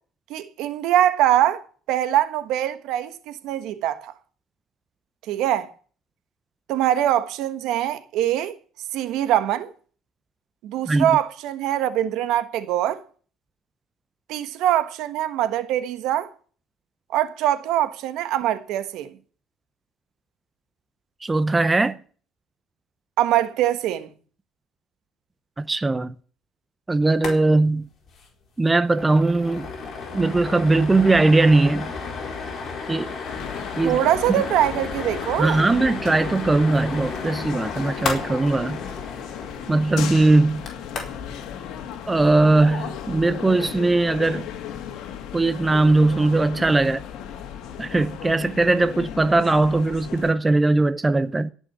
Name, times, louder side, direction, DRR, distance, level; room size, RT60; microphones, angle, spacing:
voice 1, 0.3-1.6 1.9-4.1 5.3-5.7 6.7-8.6 8.9-9.7 10.6-13.0 14.3-16.3 17.1-19.1 23.2-24.1 33.8-35.6, right 12 dB, 75° right, 1.4 m, -23 dB
voice 2, 21.2-22.0 25.6-26.1 26.9-27.9 28.6-29.7 30.1-31.9 32.9-33.1 33.8-34.0 35.4-38.8 39.7-40.6 42.1-44.5 45.3-47.0 47.8-51.5, right 2 dB, 15° right, 0.6 m, -19 dB
sound 1, 27.1-27.4 27.6-27.7 28.1-28.3 28.6-41.3, left 4 dB, 40° left, 4.3 m, -33 dB
Gothenburg Train Station, 33.2-50.3, left 8 dB, 70° left, 2.3 m, -35 dB
17.0 x 6.4 x 9.7 m
cardioid pair, 145°, 0 cm